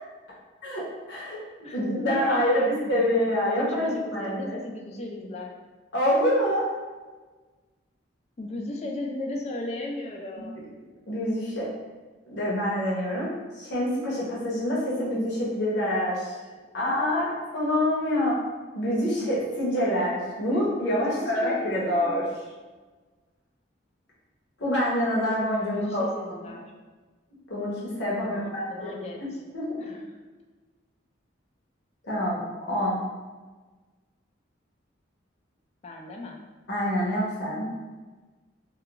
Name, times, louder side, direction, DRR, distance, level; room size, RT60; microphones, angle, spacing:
voice 1, 1.1-4.6 5.9-6.7 11.1-11.7 12.3-13.3 13.6-16.3 16.7-18.4 18.7-22.3 24.6-26.1 27.5-29.0 29.5-29.6 32.1-32.4 32.7-33.0 36.7-37.7, equal, 60° left, -6 dB, 0.8 m, -26 dB
voice 2, 1.6-3.1 3.6-5.5 8.4-10.6 21.1-22.2 25.7-26.7 28.2-29.4 29.7-30.1 35.8-36.4, left 1 dB, 35° left, 0 dB, 0.3 m, -36 dB
2.3 x 2.2 x 2.8 m, 1.3 s
head